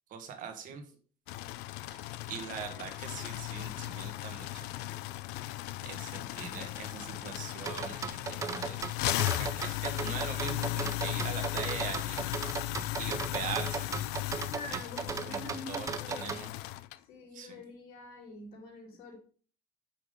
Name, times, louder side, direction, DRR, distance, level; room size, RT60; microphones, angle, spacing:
voice 1, 0.1-0.8 1.9-2.0 2.3-4.9 5.4-8.8 9.3-12.3 13.0-13.9 15.3-15.4 15.7-16.5 17.3-17.6, right 7 dB, 55° right, 1.6 m, -42 dB
sound 1, 1.3-17.0, left 17 dB, 80° left, 0.4 m, -36 dB
sound 2, 7.7-16.4, right 5 dB, 20° right, 0.4 m, -36 dB
voice 2, 14.4-16.3 17.0-19.2, left 2 dB, 65° left, 3.2 m, -46 dB
5.9 x 5.9 x 5.1 m
cardioid pair, 145°, 17 cm